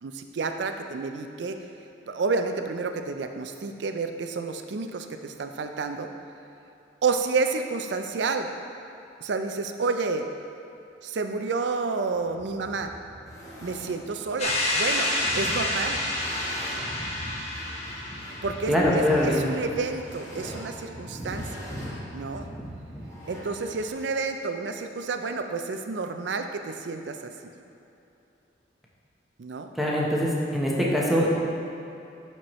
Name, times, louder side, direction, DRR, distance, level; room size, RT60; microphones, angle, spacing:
voice 1, 0.0-1.6 2.1-6.1 7.0-8.5 9.2-10.3 11.0-12.9 13.6-15.1 15.4-16.0 18.4-21.7 22.1-22.5 23.3-27.5 29.4-29.7, right 4 dB, 75° right, 6 dB, 0.5 m, -30 dB
sound 1, 12.3-23.9, equal, 20° left, 1.2 m, -40 dB
sound 2, 14.4-19.2, left 1 dB, 40° left, 1.0 m, -29 dB
voice 2, 18.7-19.4 29.8-31.3, left 1 dB, ahead, -5 dB, 1.0 m, -23 dB
11.0 x 4.4 x 3.1 m, 2.9 s
head